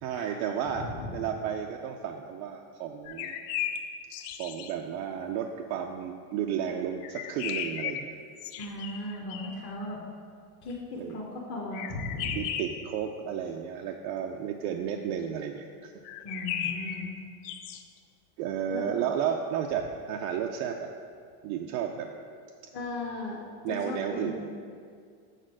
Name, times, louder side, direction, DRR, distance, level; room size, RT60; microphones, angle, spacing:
voice 1, 0.0-3.3 4.4-8.1 10.9-11.2 12.4-15.9 16.6-16.7 18.4-20.9 21.4-22.1 23.6-24.4, right 8 dB, 65° right, 2 dB, 0.6 m, -32 dB
voice 2, 0.8-1.2 8.6-10.0 10.6-12.4 16.2-17.1 18.7-18.8 22.7-23.4 23.7-24.4, left 2 dB, 25° left, -5 dB, 0.8 m, -37 dB
sound 1, 3.0-4.7 7.0-9.7 11.7-12.9 16.0-17.8, left 8 dB, 45° left, 0.4 m, -36 dB
6.6 x 4.3 x 6.2 m, 2.2 s
supercardioid pair, 155°, 46 cm